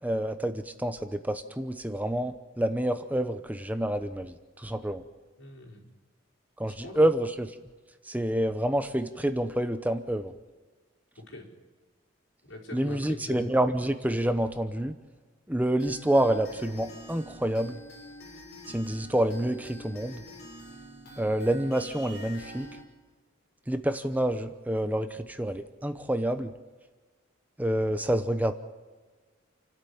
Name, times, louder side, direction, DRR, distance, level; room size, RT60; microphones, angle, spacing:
voice 1, 0.0-5.0 6.6-7.5 8.1-10.3 12.7-14.9 15.5-17.8 18.7-20.2 21.2-22.7 23.7-26.5 27.6-28.5, right 1 dB, 10° right, 9 dB, 0.8 m, -28 dB
voice 2, 5.4-5.8 6.6-7.1 11.2-11.5 12.4-13.5, left 1 dB, 85° left, -3 dB, 5.3 m, -42 dB
sound 1, 15.8-22.8, equal, 55° left, 6.6 m, -46 dB
29.0 x 12.5 x 8.7 m, 1.4 s
head